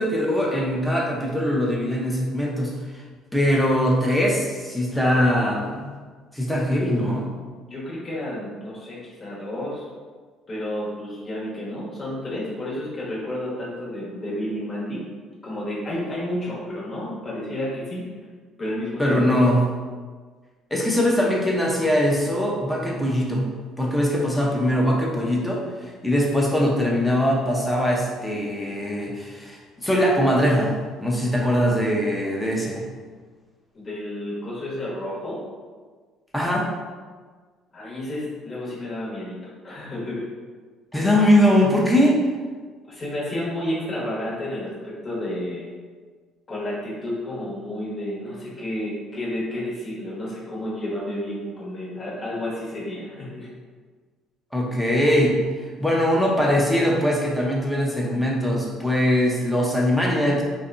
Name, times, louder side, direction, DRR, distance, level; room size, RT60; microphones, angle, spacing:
voice 1, 0.0-2.8 3.3-5.9 6.3-7.3 19.0-19.7 20.7-23.5 23.8-30.7 31.0-32.8 36.3-36.7 40.9-42.1 54.5-55.4 55.8-60.4, equal, 5° left, -3 dB, 0.6 m, -21 dB
voice 2, 7.7-9.9 10.5-15.0 15.4-18.1 18.6-19.5 33.7-35.5 37.7-39.4 39.6-40.3 42.8-45.7 46.5-53.5, left 1 dB, 40° left, -7 dB, 1.1 m, -31 dB
2.6 x 2.2 x 2.5 m, 1.5 s
hypercardioid pair, 65°, 0 cm